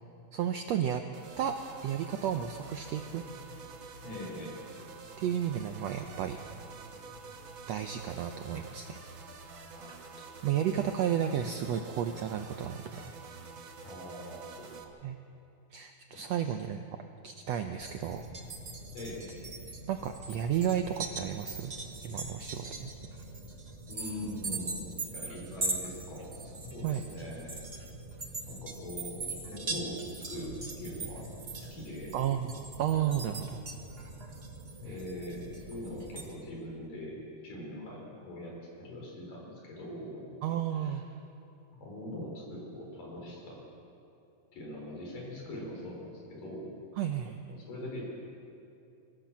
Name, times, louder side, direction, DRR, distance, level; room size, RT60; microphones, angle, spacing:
voice 1, 0.3-1.0 1.4-1.6 1.8-3.3 5.2-6.4 7.7-9.0 10.4-13.1 15.0-15.2 15.7-16.9 17.2-18.2 19.9-21.7 22.0-22.9 26.8-27.0 32.1-32.5 32.8-33.6 34.9-35.0 40.4-41.1 47.0-47.6, right 9 dB, 85° right, 6 dB, 1.5 m, -32 dB
sound 1, 1.1-14.8, right 4 dB, 50° right, 1.8 m, -48 dB
voice 2, 4.0-4.6 9.7-10.4 13.8-15.1 16.1-16.6 18.9-19.3 23.9-27.5 28.4-32.2 34.8-40.3 40.8-41.0 41.8-43.6 44.5-46.7 47.5-48.0, left 1 dB, 80° left, -1 dB, 6.2 m, -42 dB
sound 2, 17.8-36.3, right 3 dB, 35° right, 1.0 m, -41 dB
24.0 x 15.0 x 7.4 m, 2.7 s
omnidirectional pair, 3.9 m